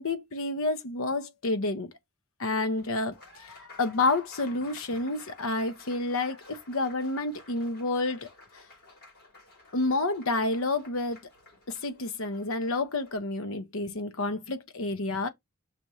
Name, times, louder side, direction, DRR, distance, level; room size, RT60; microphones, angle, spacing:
voice 1, 0.0-1.9 2.4-3.1 3.8-8.3 9.7-11.2 11.7-15.3, left 2 dB, 65° left, 1.0 m, -29 dB
Applause, 2.8-13.2, left 3 dB, 45° left, 4.5 m, -53 dB
6.0 x 3.1 x 5.4 m
head